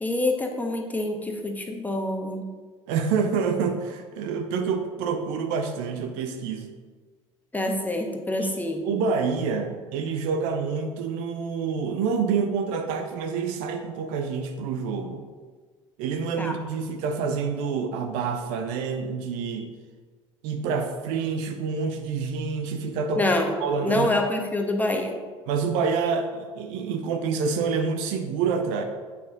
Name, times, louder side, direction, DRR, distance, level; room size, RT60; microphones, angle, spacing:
voice 1, 0.0-2.4 7.5-8.8 16.4-16.5 23.1-23.5 23.8-25.2, left 1 dB, 10° left, 3 dB, 1.1 m, -26 dB
voice 2, 2.9-6.7 8.4-8.5 8.8-15.2 16.0-19.7 20.4-23.3 23.6-24.2 25.5-28.8, right 5 dB, 55° right, 6 dB, 0.8 m, -27 dB
8.5 x 5.8 x 3.9 m, 1.4 s
figure-of-eight pair, 60°, 16 cm